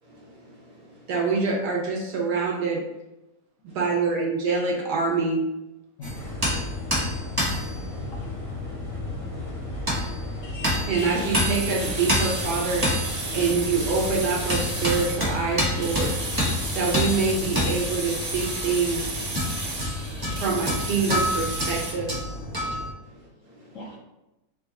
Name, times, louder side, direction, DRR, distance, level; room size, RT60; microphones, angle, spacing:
voice 1, 0.0-1.1 3.7-3.8 7.4-8.4 9.2-10.9 20.0-20.3 23.0-24.0, equal, 55° right, -4 dB, 1.5 m, -52 dB
voice 2, 1.1-2.8 3.6-5.4 10.9-16.1 16.7-19.2 20.4-22.1, right 4 dB, 75° right, -1 dB, 1.4 m, -25 dB
voice 3, 6.0-6.9 8.1-8.6 19.7-20.1 23.7-24.0, left 1 dB, 70° left, 0 dB, 0.8 m, -45 dB
sound 1, 6.0-22.9, equal, 20° right, 0.7 m, -29 dB
sound 2, 6.1-17.7, left 3 dB, 40° left, 0.4 m, -38 dB
sound 3, 11.0-21.9, right 2 dB, 35° right, 1.2 m, -33 dB
3.9 x 2.4 x 4.0 m, 0.97 s
omnidirectional pair, 1.8 m